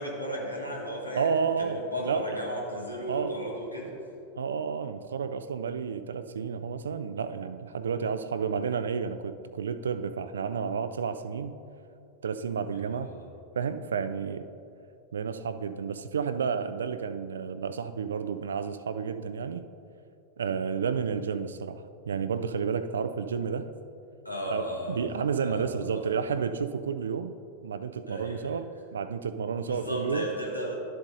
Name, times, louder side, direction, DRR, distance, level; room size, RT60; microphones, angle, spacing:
voice 1, 0.0-1.3 1.6-3.9 12.7-13.2 24.2-25.0 25.4-25.6 25.9-26.0 28.1-28.5 29.6-30.7, equal, 85° left, -2 dB, 1.5 m, -35 dB
voice 2, 1.2-2.4 3.1-3.4 4.4-11.6 12.2-13.1 13.6-14.5 15.1-19.6 20.4-23.7 24.5-27.3 27.6-30.3, right 6 dB, 65° right, 11 dB, 0.3 m, -31 dB
12.0 x 7.5 x 2.6 m, 2.6 s
figure-of-eight pair, 90°, 0 cm